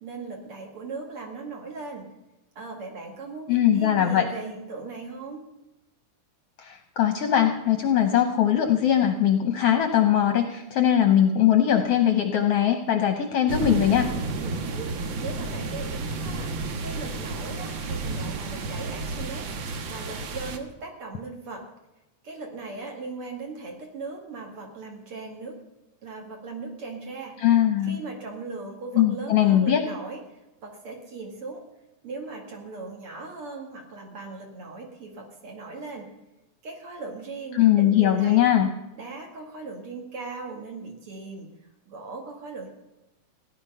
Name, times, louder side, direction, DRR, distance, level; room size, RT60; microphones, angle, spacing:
voice 1, 0.0-2.1 2.6-5.4 14.4-16.5 16.8-21.7 22.2-25.6 26.0-27.4 27.8-30.2 30.6-31.7 32.0-36.1 36.6-38.4 39.0-41.5 41.9-42.7, right 3 dB, 50° right, 1 dB, 2.8 m, -38 dB
voice 2, 3.5-4.3 6.6-14.1 27.4-28.0 28.9-29.8 37.5-38.7, left 10 dB, 70° left, 5 dB, 1.6 m, -21 dB
sound 1, 13.5-20.6, right 3 dB, 65° right, 1.2 m, -31 dB
16.5 x 10.5 x 5.5 m, 0.96 s
omnidirectional pair, 3.5 m